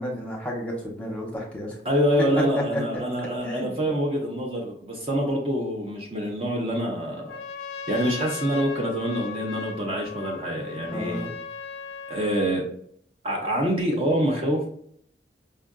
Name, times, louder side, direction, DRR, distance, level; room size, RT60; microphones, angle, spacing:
voice 1, 0.0-1.8 2.4-2.8 3.4-3.8 10.9-11.3, equal, 5° left, -3 dB, 0.9 m, -31 dB
voice 2, 1.8-7.3 7.9-11.3 12.1-12.6 13.2-14.7, equal, 35° right, -1 dB, 0.7 m, -26 dB
Trumpet, 7.2-12.7, left 5 dB, 65° left, 0.4 m, -38 dB
5.3 x 2.4 x 2.3 m, 0.64 s
head